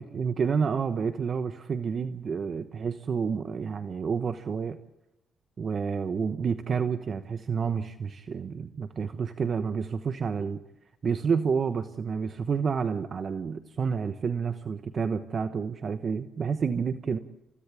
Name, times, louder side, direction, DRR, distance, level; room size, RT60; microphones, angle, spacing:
voice 1, 0.0-4.8 5.6-10.6 11.0-17.2, right 6 dB, 45° right, 9 dB, 1.1 m, -29 dB
29.5 x 29.5 x 3.6 m, 0.90 s
cardioid pair, 95°, 0 cm